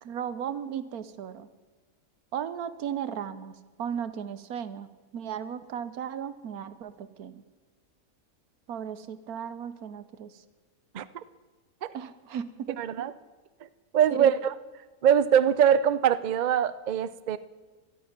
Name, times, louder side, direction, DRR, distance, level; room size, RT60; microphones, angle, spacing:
voice 1, 0.0-1.5 2.3-7.4 8.7-10.4 11.9-12.8 14.1-14.3, right 8 dB, 90° right, 14 dB, 1.3 m, -36 dB
voice 2, 12.8-13.1 13.9-14.5 15.0-17.4, right 9 dB, 60° right, 15 dB, 0.4 m, -22 dB
13.0 x 10.5 x 9.4 m, 1.3 s
omnidirectional pair, 1.5 m